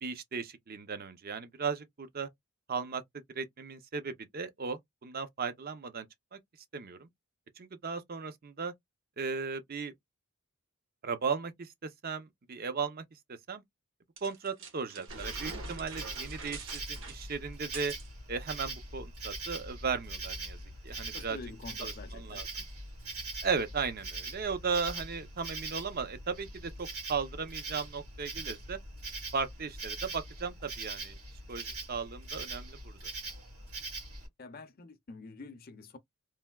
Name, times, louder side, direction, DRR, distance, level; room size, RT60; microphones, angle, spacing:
voice 1, 0.0-2.3 2.7-3.0 3.3-6.1 6.3-6.4 6.7-7.1 7.6-8.7 9.2-9.9 11.0-13.0 13.3-13.6 14.2-17.9 18.3-20.6 20.8-21.4 21.8-22.5 23.4-28.8 29.3-31.2 31.5-33.1, right 5 dB, 40° right, 0.5 m, -36 dB
sound 1, 14.2-18.1, right 5 dB, 60° right, 1.0 m, -45 dB
Insect, 15.1-34.3, right 2 dB, 85° right, 2.1 m, -42 dB
voice 2, 21.1-22.5 34.4-36.0, left 3 dB, 40° left, 0.5 m, -47 dB
3.3 x 2.6 x 2.2 m
head